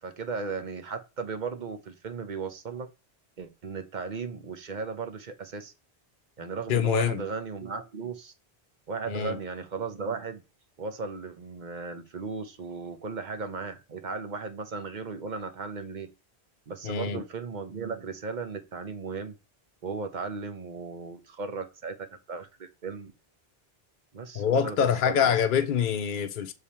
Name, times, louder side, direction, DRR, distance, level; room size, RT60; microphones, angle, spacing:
voice 1, 0.0-2.9 3.4-5.7 6.4-8.3 8.9-10.4 10.8-16.1 16.7-19.3 19.8-23.1 24.1-25.7, right 4 dB, 50° right, 1.0 m, -36 dB
voice 2, 6.7-7.2 9.1-9.4 16.8-17.2 24.3-26.5, left 8 dB, 60° left, 0.7 m, -25 dB
6.7 x 3.5 x 4.3 m
omnidirectional pair, 1.0 m